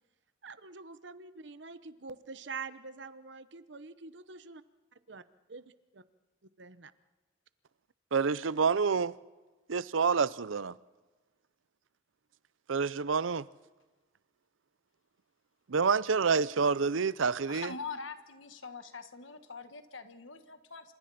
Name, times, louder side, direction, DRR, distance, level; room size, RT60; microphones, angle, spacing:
voice 1, 0.4-4.6 5.1-5.2 5.5-6.0 6.6-6.9, right 4 dB, 65° right, 1.0 m, -45 dB
voice 2, 8.1-9.1 9.7-10.8 12.7-13.5 15.7-17.7, right 5 dB, 90° right, 0.6 m, -28 dB
voice 3, 17.5-20.9, left 4 dB, 85° left, 1.7 m, -43 dB
28.0 x 26.5 x 4.3 m
head